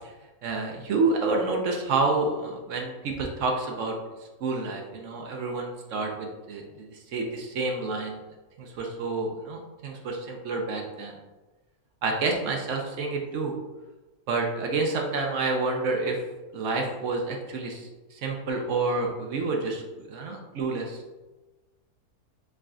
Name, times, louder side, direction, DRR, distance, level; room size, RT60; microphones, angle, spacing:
voice 1, 0.4-3.9 4.4-8.2 8.6-11.2 12.0-13.5 14.3-16.2 16.5-21.0, right 3 dB, 65° right, 2 dB, 0.9 m, -29 dB
4.8 x 3.7 x 2.3 m, 1.2 s
omnidirectional pair, 1.6 m